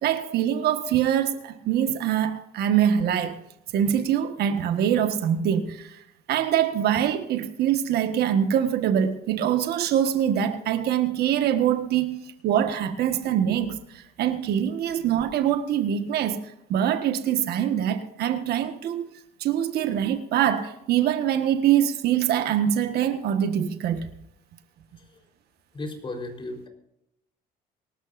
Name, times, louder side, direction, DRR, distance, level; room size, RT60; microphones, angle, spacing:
voice 1, 0.0-3.4 3.7-6.0 6.3-12.1 12.4-16.4 16.7-19.1 19.4-24.1, right 9 dB, 70° right, 1.5 m, -24 dB
voice 2, 25.7-26.7, left 2 dB, 30° left, 4.0 m, -35 dB
24.5 x 13.0 x 2.6 m
cardioid pair, 110°, 17 cm